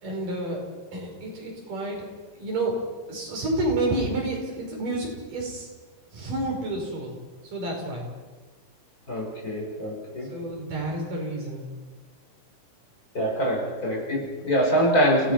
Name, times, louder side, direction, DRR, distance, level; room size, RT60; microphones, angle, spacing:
voice 1, 0.0-0.6 0.9-2.1 2.4-2.8 3.1-5.7 6.1-7.1 7.5-8.1 10.3-11.7, right 2 dB, 85° right, 0 dB, 6.7 m, -29 dB
voice 2, 9.1-10.3 13.1-15.3, equal, 25° left, -3 dB, 5.5 m, -24 dB
29.0 x 18.0 x 5.9 m, 1.3 s
omnidirectional pair, 3.6 m